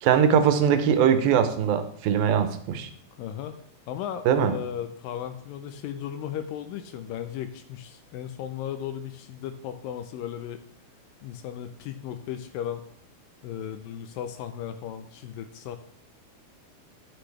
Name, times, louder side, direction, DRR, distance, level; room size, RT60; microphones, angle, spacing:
voice 1, 0.0-2.9 4.3-4.5, right 8 dB, 80° right, 9 dB, 2.5 m, -21 dB
voice 2, 3.2-3.5 3.9-10.6 11.2-12.8 13.4-15.8, left 10 dB, 80° left, 9 dB, 2.2 m, -36 dB
10.0 x 8.1 x 3.3 m, 0.64 s
omnidirectional pair, 4.3 m